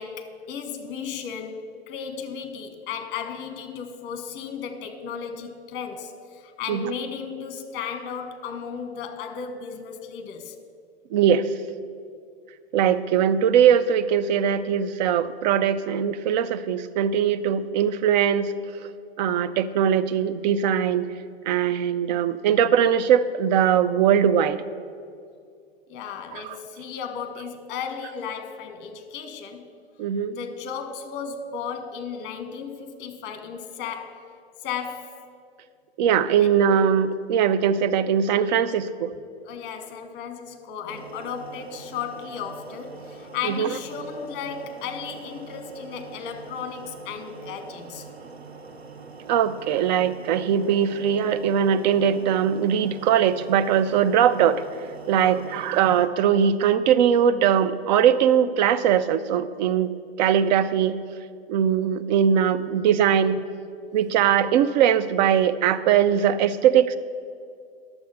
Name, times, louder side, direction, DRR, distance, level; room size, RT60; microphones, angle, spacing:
voice 1, 0.0-10.5 25.9-29.7 30.3-34.2 34.6-35.2 36.4-36.5 39.4-48.1 55.1-55.4, left 6 dB, 35° left, 1.1 m, -35 dB
voice 2, 11.1-11.5 12.7-18.5 19.2-21.1 21.5-24.6 26.3-26.5 30.0-30.4 36.0-39.1 43.4-43.7 49.3-54.6 55.1-61.0 61.5-63.5 63.9-67.0, right 8 dB, 45° right, 0.5 m, -21 dB
sound 1, 40.9-56.1, right 4 dB, 85° right, 1.0 m, -43 dB
11.0 x 7.0 x 5.3 m
figure-of-eight pair, 100°, 31 cm